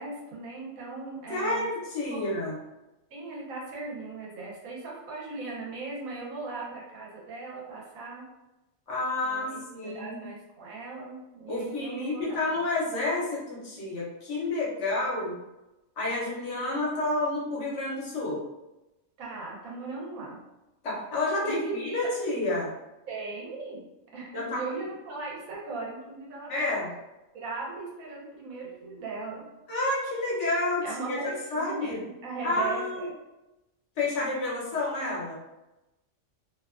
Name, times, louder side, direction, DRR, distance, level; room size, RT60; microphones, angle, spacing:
voice 1, 0.0-1.7 2.1-2.2 3.1-8.2 9.2-12.4 14.9-15.3 19.2-20.4 21.4-22.0 23.1-26.9 27.3-29.5 30.8-33.1, right 3 dB, 90° right, -3 dB, 1.2 m, -38 dB
voice 2, 1.3-2.6 8.9-10.2 11.5-15.3 16.0-18.4 20.8-22.7 24.3-24.6 26.5-26.9 29.7-32.0 32.4-33.1 34.0-35.4, left 2 dB, 65° left, -5 dB, 1.0 m, -30 dB
2.8 x 2.2 x 2.3 m, 0.99 s
omnidirectional pair, 1.4 m